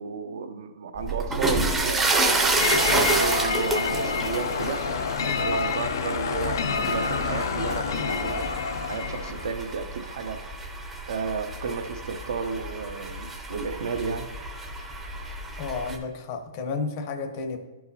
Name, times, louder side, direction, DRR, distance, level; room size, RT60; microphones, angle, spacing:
voice 1, 0.0-2.6 2.9-10.6 11.0-14.3, right 5 dB, 70° right, 7 dB, 0.7 m, -33 dB
sound 1, 1.0-16.0, right 2 dB, 10° right, 0.6 m, -29 dB
sound 2, 2.6-9.6, left 5 dB, 65° left, 0.4 m, -28 dB
voice 2, 15.6-17.6, left 4 dB, 35° left, 6 dB, 0.7 m, -32 dB
11.0 x 4.6 x 2.7 m, 1.2 s
hypercardioid pair, 150°, 2 cm